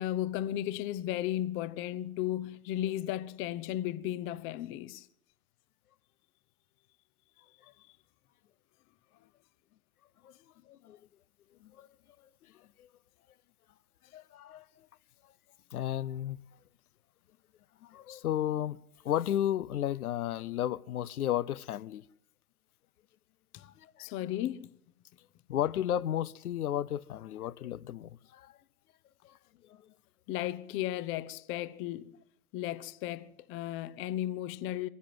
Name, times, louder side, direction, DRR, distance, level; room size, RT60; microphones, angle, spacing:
voice 1, 0.0-5.1 23.5-23.7 24.0-24.8 30.3-32.2 32.5-34.9, left 13 dB, 30° left, 0.8 m, -35 dB
voice 2, 10.7-11.0 11.6-11.9 12.5-12.9 14.1-14.9 15.7-16.4 17.8-18.8 19.0-22.0 23.6-24.1 25.5-28.5 29.2-29.4 29.6-29.8, left 11 dB, 70° left, 0.8 m, -33 dB
23.0 x 16.0 x 7.7 m
hypercardioid pair, 115°, 45 cm